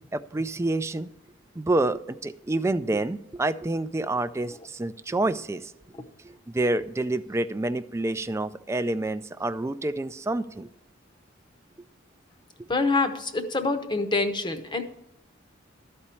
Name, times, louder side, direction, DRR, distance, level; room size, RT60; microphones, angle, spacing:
voice 1, 0.1-1.1 1.6-5.7 6.2-10.7, right 2 dB, 15° right, 13 dB, 0.3 m, -28 dB
voice 2, 12.7-14.8, left 3 dB, 25° left, 8 dB, 0.8 m, -26 dB
13.0 x 4.3 x 8.3 m, 0.85 s
head